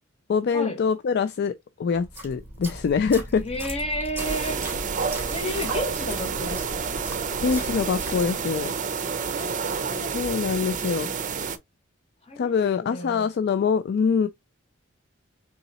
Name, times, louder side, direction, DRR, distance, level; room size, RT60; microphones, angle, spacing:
voice 1, 0.3-1.5 1.8-3.4 7.4-8.7 10.1-11.1 12.4-14.3, left 6 dB, 55° left, 0.3 m, -24 dB
sound 1, 1.9-8.7, right 1 dB, 10° right, 2.7 m, -38 dB
voice 2, 3.4-4.6 5.3-7.0 9.4-10.1 12.2-13.3, left 1 dB, 30° left, 1.5 m, -32 dB
sound 2, 4.2-11.6, right 6 dB, 40° right, 0.6 m, -29 dB
4.0 x 3.7 x 2.9 m
head